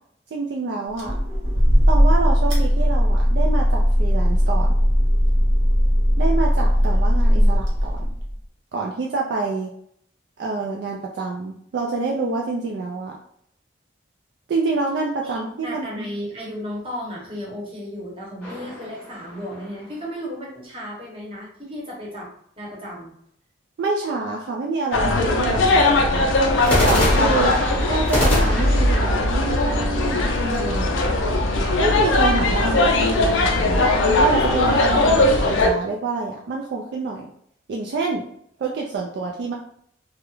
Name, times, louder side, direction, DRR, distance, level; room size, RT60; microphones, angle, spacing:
voice 1, 0.3-1.1 1.9-4.7 6.2-8.1 8.7-9.7 10.4-13.1 14.5-16.1 23.8-26.4 26.7-30.9 31.8-37.3 37.7-38.2 38.6-39.5, right 3 dB, 60° right, -1 dB, 0.3 m, -27 dB
sound 1, 1.0-8.4, equal, 80° right, 0.8 m, -18 dB
voice 2, 6.9-7.6 15.2-22.3 22.6-23.1, equal, 30° right, -4 dB, 0.8 m, -34 dB
sound 2, 18.4-19.9 26.6-30.6, left 1 dB, 5° left, 0.8 m, -25 dB
sound 3, 24.9-35.7, left 2 dB, 75° left, 0.4 m, -19 dB
2.3 x 2.0 x 3.0 m, 0.67 s
head